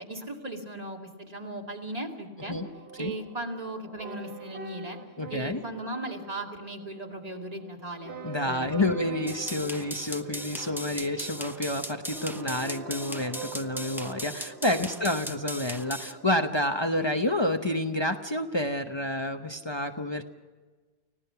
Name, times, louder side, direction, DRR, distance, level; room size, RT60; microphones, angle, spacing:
voice 1, 0.1-2.6 3.0-5.0 5.3-8.1 8.4-9.0, right 1 dB, 35° right, 1 dB, 2.6 m, -37 dB
sound 1, 2.4-16.3, right 4 dB, 80° right, 1.4 m, -44 dB
voice 2, 5.2-5.6 8.2-20.2, left 1 dB, 25° left, 4 dB, 1.0 m, -29 dB
sound 2, 9.3-16.1, equal, ahead, 0.9 m, -38 dB
30.0 x 16.5 x 5.8 m, 1.3 s
omnidirectional pair, 1.1 m